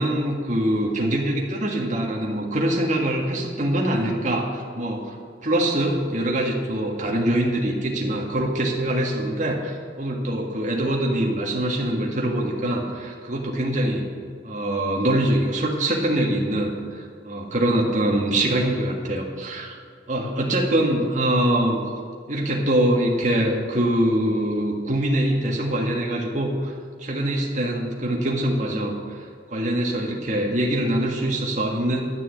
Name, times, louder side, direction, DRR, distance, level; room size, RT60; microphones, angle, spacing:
voice 1, 0.0-5.2 5.4-14.1 14.4-19.8 20.1-21.8 22.3-26.7 27.0-32.0, right 1 dB, 45° right, -1 dB, 1.8 m, -24 dB
12.0 x 6.9 x 8.2 m, 2.2 s
head